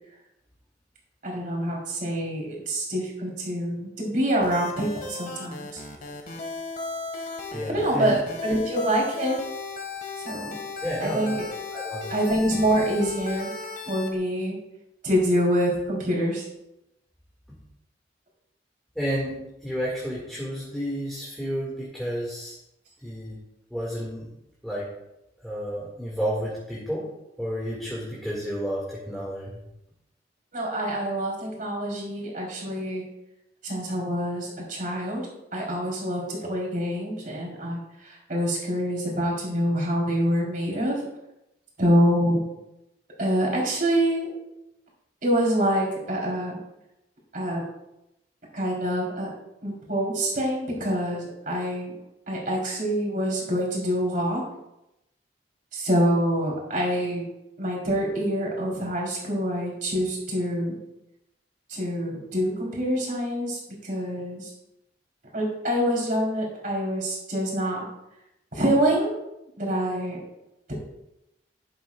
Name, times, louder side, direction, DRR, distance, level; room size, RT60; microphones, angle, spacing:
voice 1, 1.2-5.8 7.7-9.4 10.2-10.5 11.0-11.5 12.1-13.5 13.9-14.6 15.0-16.4 30.5-33.1 33.6-35.3 35.5-41.0 41.8-42.4 43.2-44.3 45.2-46.6 47.3-47.6 48.5-49.3 49.6-51.9 52.3-54.4 55.7-57.2 57.6-60.8 61.7-64.5 65.3-67.9 68.5-69.1 69.6-70.2, equal, 50° right, -2 dB, 3.8 m, -26 dB
sound 1, 4.4-14.1, left 3 dB, 50° left, 1.7 m, -36 dB
voice 2, 7.5-8.2 10.8-11.4 11.7-12.1 19.0-22.5 23.0-23.4 23.7-24.3 24.6-24.9 25.4-27.1 27.4-29.6, equal, ahead, -6 dB, 2.1 m, -31 dB
11.5 x 10.5 x 2.4 m, 0.88 s
head